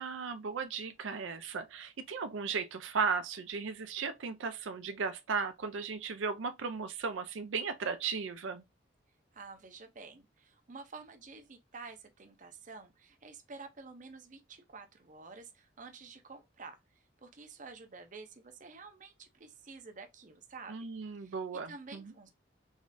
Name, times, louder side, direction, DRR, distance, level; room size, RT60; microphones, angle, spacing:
voice 1, 0.0-8.6 20.7-22.1, right 5 dB, 90° right, 0.5 m, -36 dB
voice 2, 9.3-16.8 17.2-20.9 21.2-21.3 21.7-22.3, right 4 dB, 40° right, 0.6 m, -50 dB
3.6 x 3.2 x 2.5 m
head